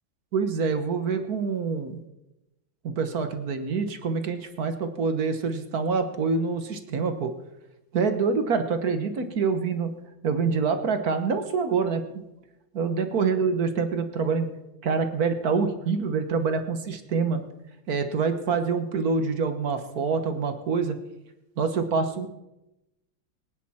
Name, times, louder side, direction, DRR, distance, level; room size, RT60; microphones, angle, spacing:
voice 1, 0.3-2.0 2.8-7.3 7.9-10.0 10.2-12.2 12.7-14.5 14.8-17.4 17.9-21.0 21.6-22.3, right 5 dB, 55° right, 8 dB, 1.5 m, -26 dB
23.5 x 9.6 x 4.3 m, 0.94 s
omnidirectional pair, 2.2 m